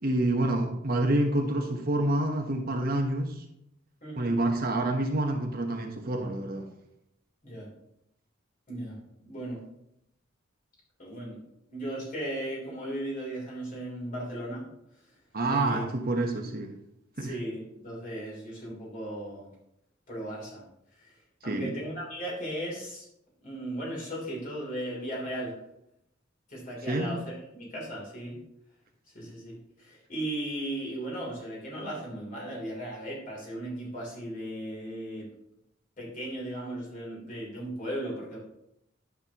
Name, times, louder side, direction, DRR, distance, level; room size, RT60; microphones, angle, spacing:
voice 1, 0.0-3.4 4.1-6.7 15.3-16.7 17.2-17.4 21.5-21.7 26.9-27.1, right 1 dB, 50° right, 3 dB, 1.1 m, -28 dB
voice 2, 4.0-4.3 7.4-7.7 8.7-9.6 11.0-11.4 11.7-14.6 15.5-15.9 16.3-16.4 17.2-19.5 20.1-20.6 20.9-21.1 21.4-23.0 23.4-25.5 26.5-28.4 29.1-35.3 36.0-38.4, right 1 dB, 45° left, -4 dB, 3.3 m, -36 dB
11.5 x 6.3 x 3.0 m, 0.78 s
head